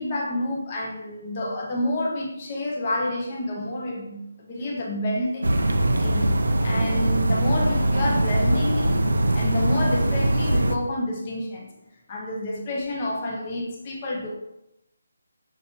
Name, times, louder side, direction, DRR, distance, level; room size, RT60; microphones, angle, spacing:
voice 1, 0.0-5.5 6.0-9.0 9.3-11.7 12.1-14.4, left 1 dB, 25° left, -2 dB, 0.7 m, -29 dB
sound 1, 5.4-10.8, right 1 dB, 85° right, 0.5 m, -22 dB
5.6 x 2.9 x 2.8 m, 0.85 s
hypercardioid pair, 170°, 0 cm